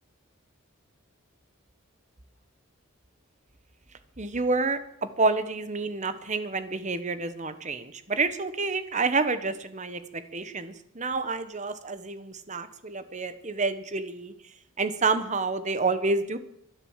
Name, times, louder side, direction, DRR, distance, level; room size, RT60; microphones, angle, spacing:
voice 1, 4.2-14.3 14.8-16.4, right 3 dB, 35° right, 11 dB, 1.2 m, -29 dB
23.5 x 8.1 x 7.4 m, 0.76 s
head